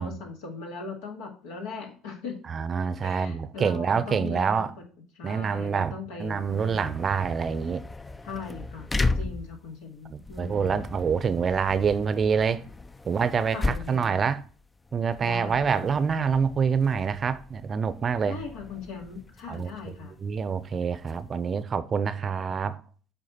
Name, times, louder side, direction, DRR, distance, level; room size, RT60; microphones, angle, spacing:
voice 1, 0.0-2.4 3.0-4.7 5.2-7.0 8.2-10.8 13.5-14.3 15.2-16.2 18.2-20.2, left 4 dB, 80° left, 2.1 m, -39 dB
voice 2, 2.5-4.7 5.2-5.9 6.2-7.8 9.0-9.2 10.1-12.6 13.1-14.4 14.9-18.4 19.5-22.8, right 6 dB, 40° right, 0.6 m, -26 dB
sound 1, 6.2-21.6, left 3 dB, 20° left, 0.5 m, -36 dB
7.9 x 4.5 x 4.2 m
hypercardioid pair, 70°, 0 cm